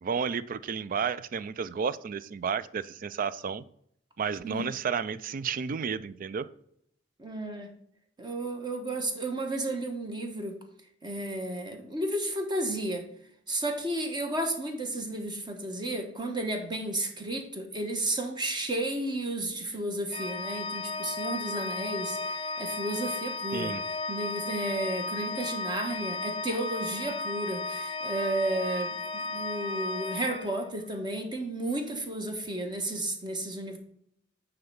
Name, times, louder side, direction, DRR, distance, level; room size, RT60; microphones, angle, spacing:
voice 1, 0.0-3.6 4.2-6.5 23.5-23.8, right 6 dB, 45° right, 16 dB, 0.4 m, -32 dB
voice 2, 7.2-7.7 8.2-10.6 11.0-13.0 13.5-23.7 24.1-33.8, right 1 dB, 25° right, 4 dB, 1.2 m, -33 dB
Organ, 20.1-31.0, left 3 dB, 30° left, 0.6 m, -34 dB
9.4 x 3.4 x 5.5 m, 0.70 s
head